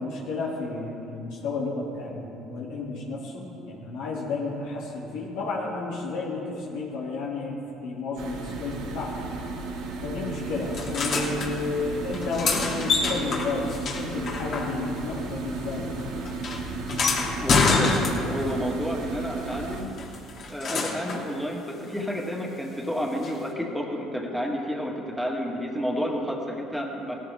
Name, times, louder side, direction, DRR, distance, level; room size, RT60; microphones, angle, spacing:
voice 1, 0.0-9.3 10.0-16.2, left 3 dB, 85° left, -5 dB, 2.9 m, -32 dB
sound 1, 8.2-19.8, right 3 dB, 85° right, 1.8 m, -35 dB
sound 2, 10.7-11.5 12.1-15.1 15.3-18.5 20.0-21.3 23.2-23.3, left 4 dB, 55° left, 2.7 m, -27 dB
voice 2, 17.4-19.9 20.5-27.2, equal, ahead, -1 dB, 2.2 m, -30 dB
17.5 x 13.5 x 3.7 m, 2.7 s
cardioid pair, 100°, 0 cm